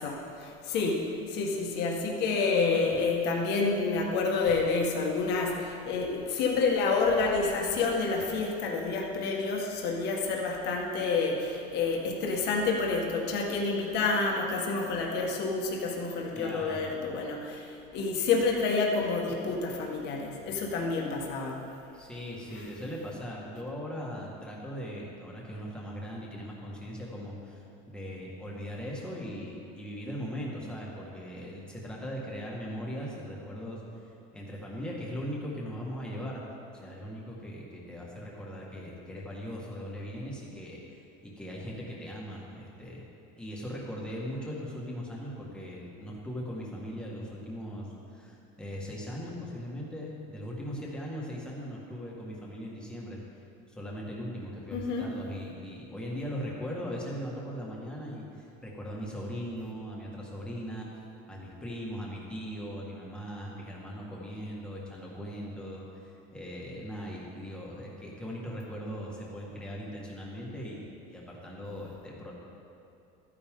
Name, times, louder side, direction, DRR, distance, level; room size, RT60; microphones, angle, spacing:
voice 1, 0.0-21.6 54.7-55.0, left 4 dB, 55° left, -1 dB, 1.7 m, -29 dB
voice 2, 16.4-16.9 21.9-33.8 34.3-36.4 36.7-43.0 43.4-53.2 53.7-60.9 61.3-72.3, equal, 5° left, -4 dB, 1.8 m, -39 dB
13.5 x 9.8 x 3.8 m, 2.6 s
cardioid pair, 160°, 21 cm